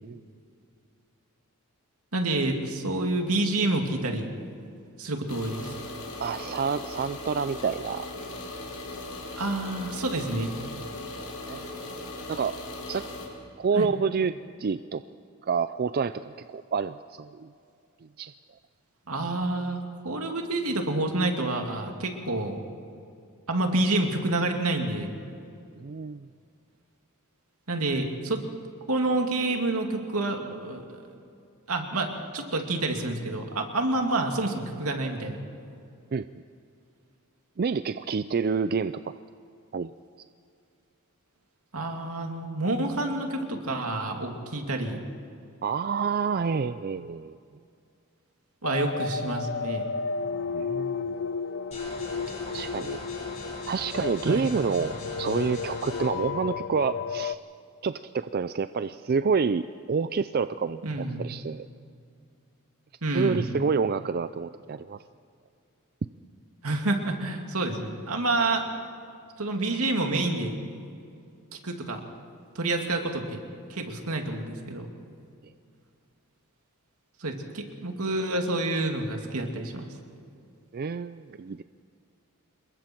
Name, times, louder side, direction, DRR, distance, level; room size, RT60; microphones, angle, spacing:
voice 1, 2.1-4.3 5.0-5.7 9.4-10.5 13.7-13.9 19.1-22.6 23.5-25.1 27.7-28.4 28.9-31.0 31.7-35.4 41.7-45.0 48.6-49.9 54.2-54.5 60.8-61.2 63.0-63.5 66.6-68.7 69.4-70.5 71.5-72.0 72.5-73.4 73.7-74.9 77.2-79.9, right 2 dB, 80° right, 3 dB, 2.5 m, -28 dB
sound 1, 5.3-13.3, left 2 dB, 90° left, 4.8 m, -38 dB
voice 2, 6.2-8.1 8.3-8.4 11.5-11.7 12.3-12.6 12.9-13.1 13.6-15.0 15.4-17.5 18.2-18.3 25.8-26.3 36.1-36.3 37.6-39.2 39.7-39.9 45.6-47.4 50.5-51.2 52.5-53.0 53.7-57.4 57.8-60.9 61.2-61.7 63.1-65.0 80.7-81.6, right 5 dB, 45° right, 12 dB, 0.4 m, -28 dB
sound 2, 48.6-57.3, left 5 dB, 55° left, 0.5 m, -33 dB
sound 3, 51.7-56.1, left 2 dB, 35° left, 4.7 m, -41 dB
27.5 x 22.0 x 4.6 m, 2.4 s
head